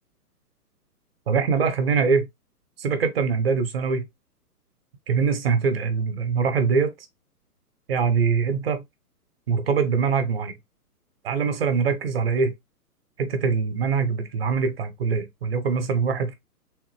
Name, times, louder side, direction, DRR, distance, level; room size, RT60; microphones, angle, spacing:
voice 1, 1.3-2.3 2.8-4.0 5.1-6.9 7.9-8.8 9.5-10.5 11.2-12.5 13.2-16.3, right 5 dB, 40° right, 0.7 m, -23 dB
3.5 x 2.6 x 3.1 m
figure-of-eight pair, 125°, 46 cm